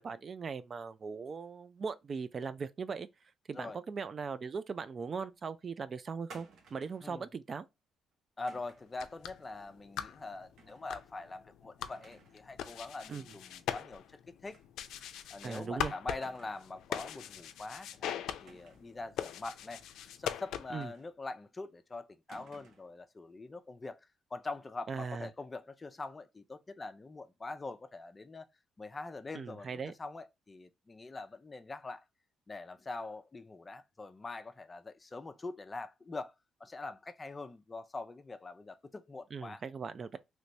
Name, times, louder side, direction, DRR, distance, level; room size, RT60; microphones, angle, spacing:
voice 1, 0.0-3.1 3.5-7.7 13.1-13.2 15.4-15.9 20.7-20.9 24.9-25.3 29.3-29.9 39.3-40.2, right 5 dB, 45° right, 0.3 m, -39 dB
sound 1, 6.3-7.1 8.5-8.9 10.6-10.9 11.3-11.4 11.9-12.5 12.8-12.9 14.5-14.7 15.0-15.1 16.2-16.8 18.4-19.0 20.8-21.4 22.3-23.0, right 4 dB, 70° right, 0.9 m, -57 dB
voice 2, 8.4-14.6 15.3-19.8 20.2-24.0 24.3-28.4 28.8-32.0 32.5-36.3 36.6-39.6, left 3 dB, 25° left, 0.5 m, -44 dB
sound 2, 8.8-20.9, left 10 dB, 85° left, 0.4 m, -42 dB
3.2 x 3.0 x 2.6 m
cardioid pair, 90°, 0 cm